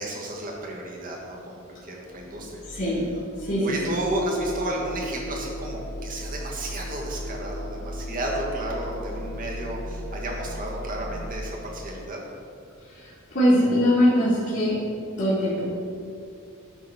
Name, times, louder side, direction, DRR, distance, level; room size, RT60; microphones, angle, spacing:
voice 1, 0.0-2.9 3.6-12.2, right 1 dB, 40° right, -2 dB, 1.4 m, -32 dB
sound 1, 2.1-11.3, equal, ahead, 1.3 m, -36 dB
voice 2, 2.7-3.1 3.4-4.0 13.3-14.8 15.2-15.6, equal, 55° left, -9 dB, 1.8 m, -21 dB
9.7 x 3.8 x 5.7 m, 2.5 s
head